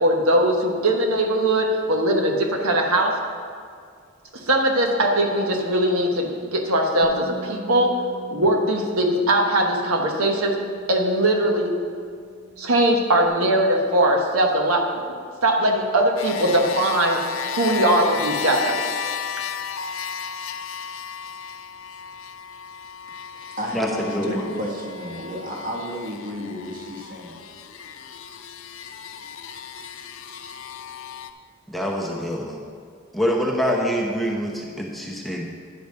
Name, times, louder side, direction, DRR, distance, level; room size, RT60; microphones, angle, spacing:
voice 1, 0.0-3.1 4.3-8.0 8.3-10.6 10.9-11.7 12.6-14.8 15.4-17.2 17.5-18.8, right 1 dB, 90° right, 1 dB, 1.2 m, -20 dB
Bass guitar, 7.0-13.3, equal, 50° left, 1.1 m, -43 dB
sound 1, 16.2-31.3, left 7 dB, 75° left, 0.5 m, -34 dB
voice 2, 23.3-27.4, equal, 40° right, -2 dB, 1.5 m, -32 dB
voice 3, 24.1-24.5 31.7-32.6 33.1-35.4, equal, ahead, -2 dB, 0.8 m, -25 dB
10.0 x 5.1 x 6.6 m, 2.1 s
head